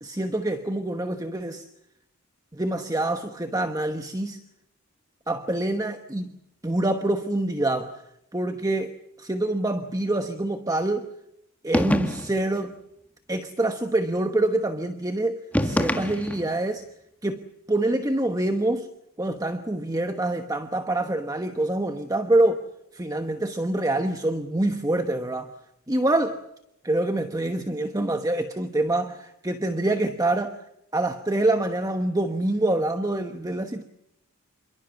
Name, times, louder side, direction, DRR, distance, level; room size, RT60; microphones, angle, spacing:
voice 1, 0.0-1.7 2.5-4.4 5.3-6.3 6.6-8.0 8.3-11.1 11.6-12.7 13.3-16.8 17.2-18.9 19.2-22.7 22.9-25.5 25.9-26.4 26.8-30.6 30.9-33.8, right 2 dB, 15° right, 7 dB, 1.1 m, -26 dB
sound 1, 11.7-12.5 15.5-16.6, equal, 5° left, 1.6 m, -25 dB
28.0 x 23.0 x 7.2 m, 0.79 s
head